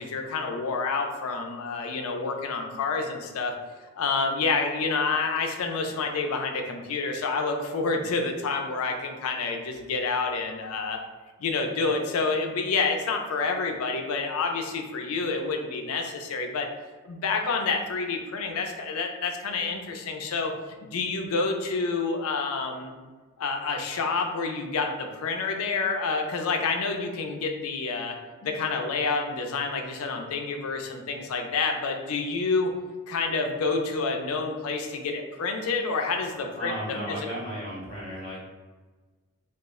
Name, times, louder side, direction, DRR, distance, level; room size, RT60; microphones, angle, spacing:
voice 1, 0.0-3.6 4.0-11.0 11.4-16.7 17.0-20.5 20.8-22.9 23.4-28.2 28.4-32.7 33.1-36.7 37.1-37.2, left 4 dB, 80° left, 4 dB, 0.4 m, -28 dB
voice 2, 36.5-38.4, equal, 30° left, -5 dB, 0.8 m, -34 dB
2.3 x 2.0 x 3.5 m, 1.3 s
head